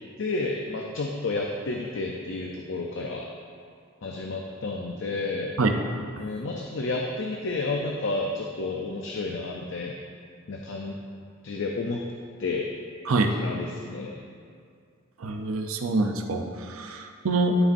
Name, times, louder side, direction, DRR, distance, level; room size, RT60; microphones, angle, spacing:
voice 1, 0.2-3.3 4.0-5.6 6.2-9.9 10.5-11.0 11.4-12.0 12.4-12.6 13.3-14.2, left 3 dB, 60° left, 0 dB, 0.5 m, -31 dB
voice 2, 15.2-17.6, right 3 dB, 80° right, 5 dB, 0.6 m, -25 dB
11.5 x 5.2 x 2.6 m, 2.2 s
head